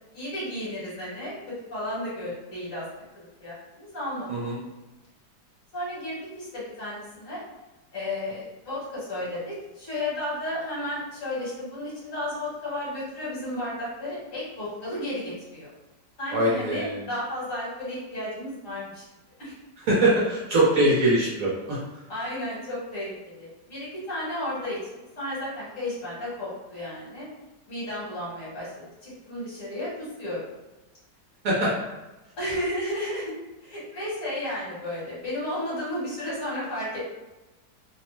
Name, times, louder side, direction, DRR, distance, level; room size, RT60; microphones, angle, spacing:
voice 1, 0.1-2.8 3.1-4.3 5.7-7.4 7.9-15.7 16.2-19.0 19.4-19.5 22.1-24.8 25.2-27.3 27.7-28.7 29.0-30.4 32.4-33.4 33.6-37.0, left 1 dB, 50° left, -8 dB, 1.4 m, -33 dB
voice 2, 16.3-16.9 19.9-21.8 31.4-31.7, right 1 dB, 60° right, -6 dB, 1.0 m, -22 dB
3.0 x 2.0 x 3.0 m, 1.1 s
omnidirectional pair, 1.9 m